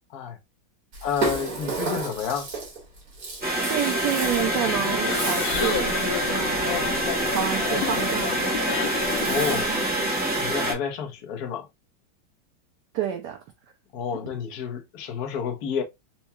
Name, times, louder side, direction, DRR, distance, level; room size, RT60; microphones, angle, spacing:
Rattle (instrument), 0.9-9.9, right 3 dB, 50° right, 1.6 m, -34 dB
voice 1, 1.0-2.5 9.2-9.7 10.3-11.7 13.9-15.8, left 7 dB, 60° left, 1.1 m, -30 dB
sound 1, 3.4-10.7, right 1 dB, 10° right, 0.7 m, -26 dB
voice 2, 3.7-8.6 9.2-10.1 12.9-13.4, right 11 dB, 75° right, 0.9 m, -30 dB
sound 2, 4.2-9.6, left 10 dB, 85° left, 1.4 m, -31 dB
4.4 x 2.2 x 2.7 m
omnidirectional pair, 2.2 m